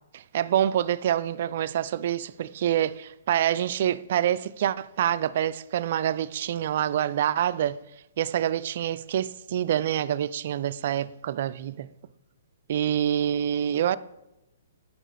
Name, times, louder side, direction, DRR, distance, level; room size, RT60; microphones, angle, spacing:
voice 1, 0.1-7.8 8.2-11.9 12.7-14.0, right 10 dB, 55° right, 0.3 m, -26 dB
9.1 x 6.1 x 4.0 m
hypercardioid pair, 135°, 0 cm